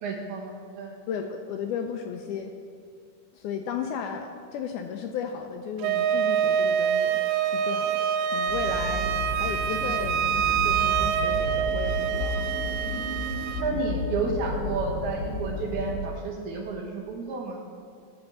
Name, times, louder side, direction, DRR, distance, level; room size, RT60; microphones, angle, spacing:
voice 1, 0.0-1.0 12.9-13.1 13.6-17.6, right 3 dB, 70° right, -1 dB, 2.5 m, -31 dB
voice 2, 1.1-2.5 3.3-7.2 7.5-10.3 10.6-12.5 13.7-13.9, left 7 dB, 80° left, 5 dB, 1.8 m, -34 dB
Wind instrument woodwind instrument, 5.8-13.7, right 9 dB, 85° right, 2.2 m, -26 dB
sound 1, 8.5-15.9, left 1 dB, 45° left, 1.5 m, -32 dB
13.0 x 4.3 x 7.1 m, 2.2 s
omnidirectional pair, 3.9 m